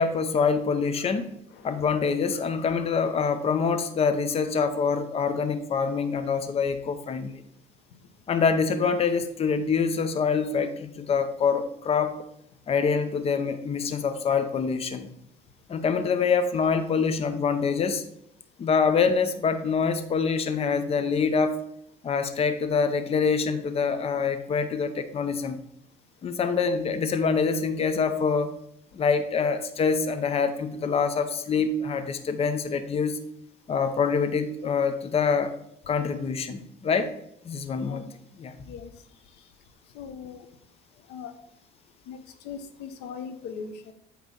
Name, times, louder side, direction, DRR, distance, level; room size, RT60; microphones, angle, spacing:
voice 1, 0.0-1.3 1.6-7.4 8.3-12.2 12.7-15.1 15.7-18.0 18.6-21.5 22.0-25.6 26.2-28.5 28.9-33.2 33.7-35.5 35.9-37.1 37.4-38.0 38.4-38.5, left 5 dB, 35° left, 9 dB, 0.7 m, -25 dB
voice 2, 1.5-2.1 37.7-38.1 38.7-38.9 39.9-40.5 41.1-41.4 42.1-43.9, left 6 dB, 90° left, 8 dB, 0.8 m, -40 dB
8.3 x 3.1 x 5.3 m, 0.75 s
cardioid pair, 110°, 17 cm